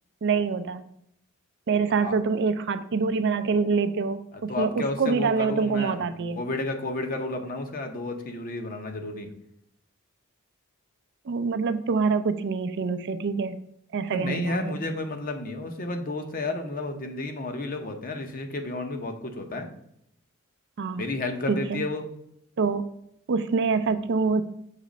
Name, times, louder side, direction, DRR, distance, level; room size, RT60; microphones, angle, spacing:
voice 1, 0.2-0.8 1.7-6.4 11.3-13.6 13.9-14.8 20.8-21.0 21.5-21.8 22.6-22.8 23.3-24.4, right 5 dB, 55° right, 11 dB, 0.4 m, -25 dB
voice 2, 4.3-9.3 14.1-19.7 21.0-22.1, left 2 dB, 40° left, 5 dB, 0.8 m, -32 dB
6.6 x 3.1 x 5.0 m, 0.74 s
head